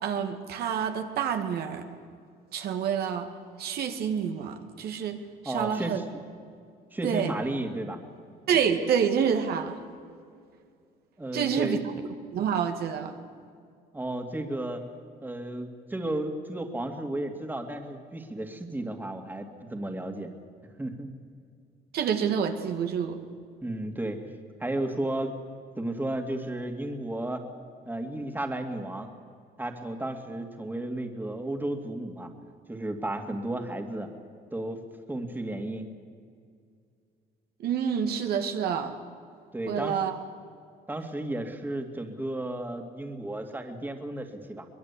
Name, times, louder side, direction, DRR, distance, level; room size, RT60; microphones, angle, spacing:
voice 1, 0.0-1.9 2.5-3.3 3.6-5.2 5.4-6.0 7.0-7.3 8.5-9.8 11.3-11.9 12.3-13.2 21.9-23.2 37.6-39.0 39.7-40.2, right 7 dB, 70° right, 5 dB, 2.1 m, -28 dB
voice 2, 5.5-6.0 6.9-8.0 11.2-11.8 13.9-14.9 15.2-20.3 20.8-21.1 23.6-24.2 24.6-25.4 25.8-27.4 27.9-29.1 29.6-32.3 32.7-34.1 34.5-34.8 35.1-35.9 39.5-40.0 40.9-44.7, right 1 dB, 10° right, 5 dB, 2.4 m, -33 dB
23.0 x 21.5 x 8.4 m, 2.2 s
cardioid pair, 110°, 17 cm